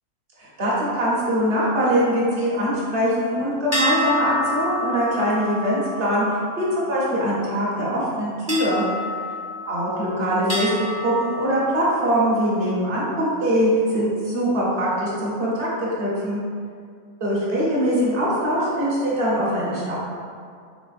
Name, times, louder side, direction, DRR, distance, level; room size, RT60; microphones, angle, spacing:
voice 1, 0.4-6.2 6.6-8.8 9.7-10.7 11.0-16.4 17.2-20.0, equal, 45° right, -7 dB, 1.0 m, -22 dB
sound 1, 3.7-7.4 8.5-10.0 10.5-12.2, equal, 20° right, 0.5 m, -29 dB
3.8 x 3.3 x 2.4 m, 2.2 s
omnidirectional pair, 1.4 m